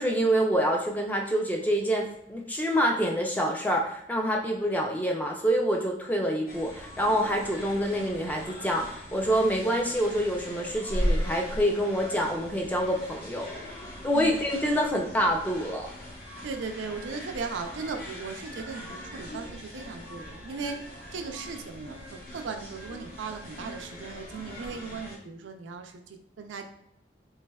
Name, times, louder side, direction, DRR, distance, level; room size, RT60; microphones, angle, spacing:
voice 1, 0.0-13.5 14.0-15.9, equal, 10° left, 1 dB, 0.4 m, -26 dB
sound 1, 6.5-25.2, equal, 55° left, 0.8 m, -38 dB
voice 2, 16.4-20.8 21.1-26.6, right 4 dB, 90° right, 5 dB, 0.4 m, -37 dB
3.4 x 3.1 x 2.2 m, 0.72 s
head